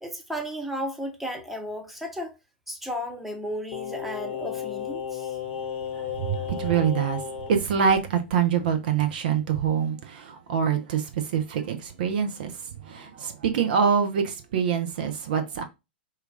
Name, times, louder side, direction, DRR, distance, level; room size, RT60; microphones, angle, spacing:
voice 1, 0.0-2.3 2.7-5.4, equal, 5° right, 0.8 m, -34 dB
Singing, 3.7-7.6 7.9-8.0, left 8 dB, 45° left, 0.8 m, -34 dB
voice 2, 5.9-12.6 12.8-15.6, right 7 dB, 55° right, 0.6 m, -25 dB
4.3 x 2.4 x 2.5 m
figure-of-eight pair, 105°, 6 cm